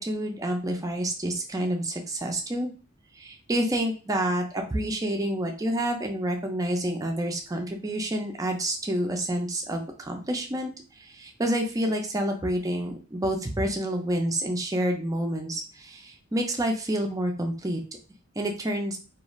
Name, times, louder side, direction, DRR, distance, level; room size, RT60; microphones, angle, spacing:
voice 1, 0.0-2.7 3.2-10.7 11.0-17.8 18.4-19.0, right 1 dB, 15° right, 3 dB, 0.4 m, -28 dB
2.4 x 2.4 x 3.0 m, 0.36 s
head